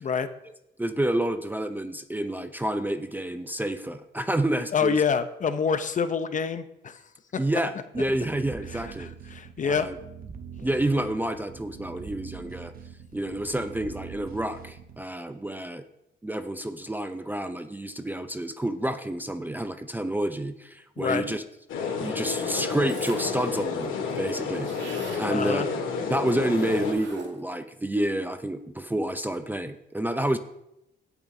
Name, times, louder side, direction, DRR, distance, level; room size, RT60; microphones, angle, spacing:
voice 1, 0.8-5.0 7.4-9.1 9.6-10.0 10.6-12.7 13.1-15.8 16.2-21.4 22.0-24.9 25.2-30.4, right 1 dB, 10° right, 9 dB, 0.5 m, -29 dB
voice 2, 4.7-7.0 8.7-9.9 21.0-21.2 25.3-25.7, left 6 dB, 40° left, 10 dB, 0.7 m, -27 dB
sound 1, 7.9-15.0, right 6 dB, 45° right, 0.9 m, -43 dB
sound 2, 21.7-26.9, left 5 dB, 85° left, 1.8 m, -30 dB
sound 3, 22.9-23.5 23.8-23.9 24.1-25.3 26.5-27.5, right 5 dB, 65° right, 1.9 m, -42 dB
17.0 x 7.0 x 2.7 m, 0.85 s
cardioid pair, 90°, 20 cm